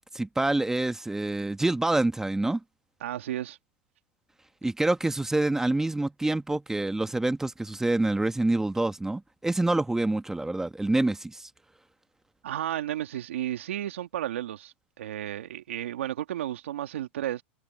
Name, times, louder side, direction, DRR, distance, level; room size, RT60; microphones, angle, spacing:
voice 1, 0.1-2.6 4.6-11.5, right 2 dB, 5° right, 1.3 m, -26 dB
voice 2, 3.0-3.6 12.4-17.4, right 12 dB, 85° right, 2.4 m, -33 dB
hypercardioid pair, 120°, 7 cm